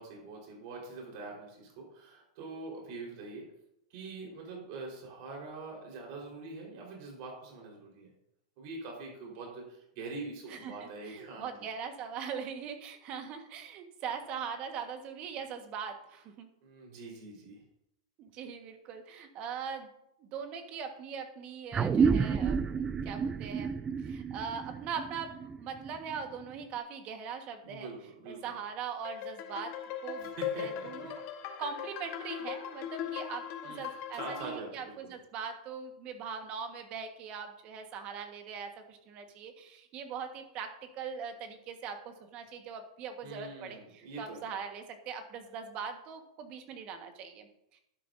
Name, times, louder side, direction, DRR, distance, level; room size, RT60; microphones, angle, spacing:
voice 1, 0.0-3.4 3.9-8.1 8.6-11.5 16.6-17.6 27.6-28.4 30.2-31.1 33.6-33.8 34.1-35.1 43.2-44.5, right 3 dB, 50° right, -1 dB, 4.3 m, -44 dB
voice 2, 10.5-16.5 18.2-19.9 20.2-27.9 28.3-31.2 31.6-47.8, right 6 dB, 35° right, 6 dB, 1.4 m, -41 dB
sound 1, 21.7-26.6, right 6 dB, 15° right, 0.3 m, -30 dB
sound 2, 29.0-34.5, left 10 dB, 45° left, 1.2 m, -39 dB
11.5 x 10.0 x 2.7 m, 0.82 s
supercardioid pair, 140°, 3 cm